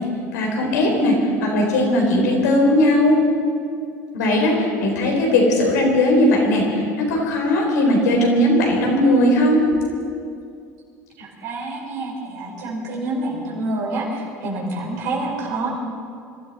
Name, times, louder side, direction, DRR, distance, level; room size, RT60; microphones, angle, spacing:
voice 1, 0.3-1.1 1.4-3.2 4.1-4.5 4.8-9.6, left 1 dB, 85° left, -1 dB, 3.8 m, -18 dB
voice 2, 11.2-15.7, right 2 dB, 80° right, -3 dB, 4.8 m, -27 dB
25.0 x 13.5 x 4.2 m, 2.3 s
hypercardioid pair, 75°, 9 cm